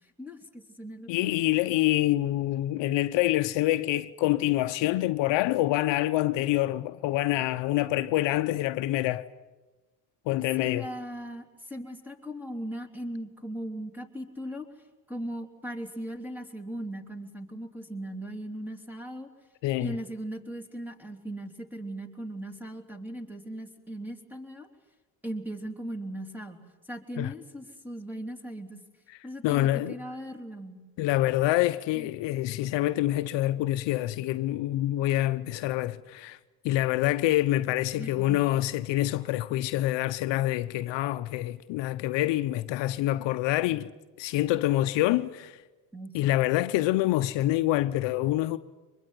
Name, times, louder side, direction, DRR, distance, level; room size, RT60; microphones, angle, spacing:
voice 1, 0.0-1.4 10.6-14.7 15.1-19.3 19.8-24.7 25.2-26.6 26.9-28.8 29.2-30.8 31.9-32.1 37.9-38.5 45.9-46.3, right 1 dB, 5° right, 3.4 m, -38 dB
voice 2, 1.1-9.3 10.3-10.9 19.6-19.9 27.2-27.3 29.4-30.0 31.0-36.4 36.6-43.9 44.2-45.6 46.1-48.6, left 15 dB, 65° left, 0.9 m, -26 dB
24.0 x 21.5 x 9.5 m
supercardioid pair, 95°, 48 cm